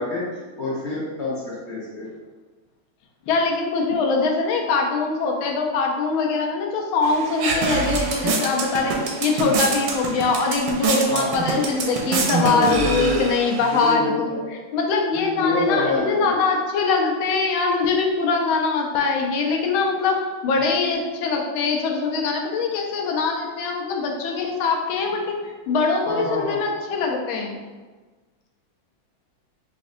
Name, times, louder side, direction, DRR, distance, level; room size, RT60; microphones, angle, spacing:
voice 1, 0.0-2.1 11.1-11.3 12.4-13.3 13.7-14.5 15.1-16.4 20.6-20.7 26.1-26.6, left 2 dB, 45° left, -7 dB, 0.9 m, -27 dB
voice 2, 3.3-9.0 9.2-27.6, left 4 dB, 90° left, 1 dB, 1.4 m, -23 dB
sound 1, 7.0-13.9, right 4 dB, 80° right, 1.3 m, -26 dB
5.1 x 2.4 x 2.6 m, 1.3 s
omnidirectional pair, 2.2 m